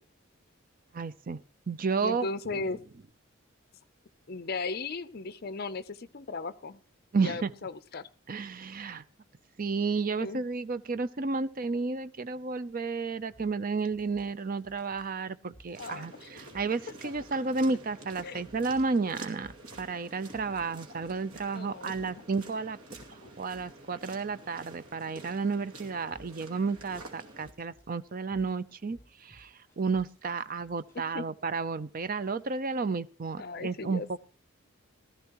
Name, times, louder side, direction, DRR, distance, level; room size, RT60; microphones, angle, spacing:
voice 1, 0.9-1.4 1.7-2.3 7.1-7.5 8.3-9.0 9.6-19.5 19.8-22.8 23.4-34.2, right 4 dB, 40° right, 0.5 m, -32 dB
voice 2, 2.0-2.8 4.3-6.8 7.2-8.1 10.2-10.4 15.8-16.3 18.2-18.4 21.5-22.1 30.9-31.2 33.4-34.1, left 3 dB, 45° left, 0.6 m, -37 dB
sound 1, 13.3-16.0 16.5-17.8 18.1-31.1 31.6-32.5, equal, 15° left, 7.6 m, -59 dB
sound 2, 15.7-27.5, right 2 dB, 85° right, 2.5 m, -49 dB
16.5 x 13.5 x 3.0 m
head